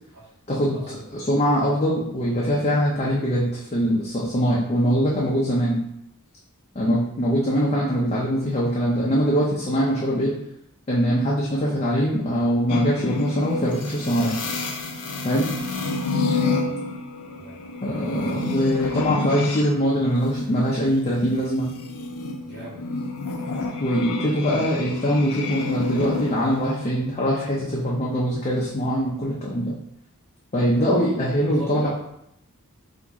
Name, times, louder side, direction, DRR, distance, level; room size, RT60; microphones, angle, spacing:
voice 1, 0.5-5.8 6.7-10.4 10.9-14.4 15.2-15.5 17.8-21.7 23.8-29.7 30.5-31.9, equal, 30° left, -6 dB, 0.6 m, -22 dB
sound 1, 12.7-19.7 20.0-26.9, left 3 dB, 80° left, 0.5 m, -29 dB
voice 2, 16.3-16.7 17.3-17.5 18.9-19.2 22.4-22.8 30.9-31.1 31.5-31.9, right 1 dB, 50° right, -13 dB, 1.5 m, -39 dB
3.0 x 2.6 x 3.5 m, 0.76 s
head